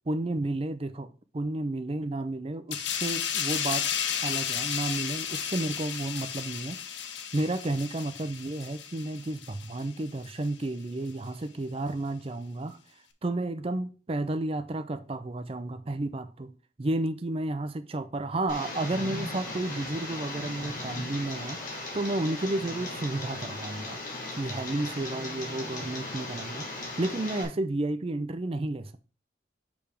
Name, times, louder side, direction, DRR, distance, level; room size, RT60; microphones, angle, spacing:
voice 1, 0.1-3.9 4.2-6.8 7.3-12.8 13.2-16.5 16.8-24.0 24.4-29.0, right 2 dB, 30° right, 0.5 m, -32 dB
sound 1, 2.7-9.9 10.2-10.5, left 8 dB, 75° left, 0.7 m, -33 dB
Tick, 18.5-27.4, left 2 dB, 45° left, 2.5 m, -37 dB
6.8 x 3.4 x 5.1 m
head